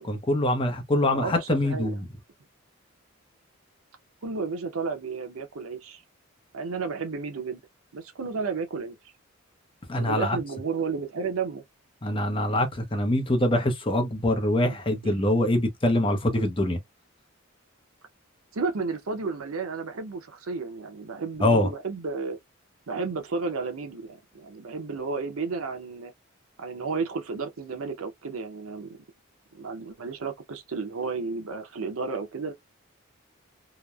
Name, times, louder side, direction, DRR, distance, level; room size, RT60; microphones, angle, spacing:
voice 1, 0.0-2.1 9.9-10.4 12.0-16.8 21.4-21.7, left 1 dB, 25° left, 0.7 m, -24 dB
voice 2, 1.1-1.9 4.2-6.0 6.5-7.6 7.9-9.0 10.0-11.6 14.6-14.7 15.0-15.2 18.5-22.4 22.9-26.1 26.6-29.0 29.5-32.5, right 4 dB, 80° right, 0.7 m, -32 dB
3.0 x 2.0 x 2.3 m
head